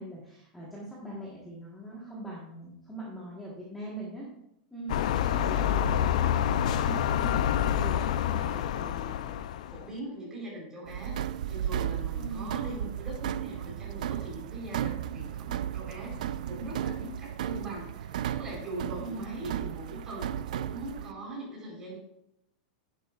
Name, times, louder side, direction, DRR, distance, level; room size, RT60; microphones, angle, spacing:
voice 1, 0.0-4.3 4.7-5.0 5.2-6.3 12.2-12.5 19.0-19.4, right 1 dB, 5° left, -5 dB, 1.4 m, -41 dB
sound 1, 4.9-9.9, left 9 dB, 55° left, 0.4 m, -27 dB
voice 2, 6.8-9.3 9.7-11.2 11.5-22.0, right 1 dB, 10° right, -5 dB, 4.0 m, -41 dB
sound 2, 10.9-21.1, right 10 dB, 65° right, 0.4 m, -35 dB
11.0 x 10.5 x 2.4 m, 0.80 s
supercardioid pair, 175°, 4 cm